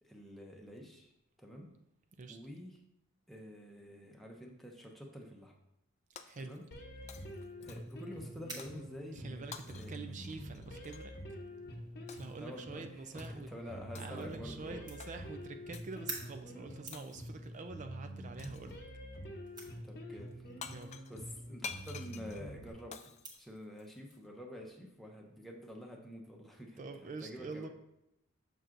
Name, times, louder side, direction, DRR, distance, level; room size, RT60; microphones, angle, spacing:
voice 1, 0.0-1.1 1.4-1.8 2.3-2.8 3.3-5.5 6.4-6.6 7.0-7.1 7.6-10.1 12.4-14.9 19.8-20.5 21.1-23.0 23.4-27.7, equal, ahead, 0 dB, 0.8 m, -48 dB
Shatter, 6.2-6.8 7.1-8.0 8.6-8.8 9.5-11.1 12.1-12.4 13.2-13.5 13.9-14.4 15.0-15.2 15.7-16.0 16.9-17.5 18.4-18.8 20.3-20.4 20.6-24.2, left 6 dB, 35° left, 0.3 m, -50 dB
voice 2, 6.2-6.6 9.1-11.1 12.1-13.5 14.0-18.8 20.7-21.0 26.8-27.7, right 3 dB, 35° right, 7 dB, 0.4 m, -46 dB
sound 1, 6.5-24.2, right 3 dB, 20° right, 1.1 m, -54 dB
sound 2, 6.7-22.7, equal, 50° left, 0.8 m, -47 dB
6.7 x 6.0 x 2.5 m, 0.83 s
head